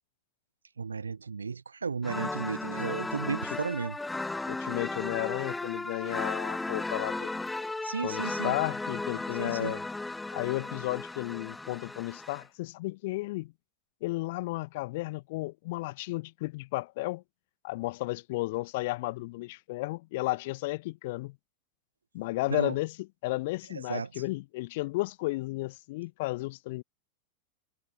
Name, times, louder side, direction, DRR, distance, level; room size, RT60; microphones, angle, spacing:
voice 1, 0.8-4.0 7.8-8.6 9.4-9.8 22.5-22.7 23.9-24.1, right 5 dB, 75° right, 0.7 m, -34 dB
sound 1, 2.0-12.4, left 2 dB, 10° left, 0.9 m, -35 dB
voice 2, 3.2-3.6 4.5-7.3 8.0-9.8 10.3-13.5 14.0-17.2 17.6-21.4 22.1-26.8, left 21 dB, 50° left, 1.1 m, -33 dB
figure-of-eight pair, 90°, 0 cm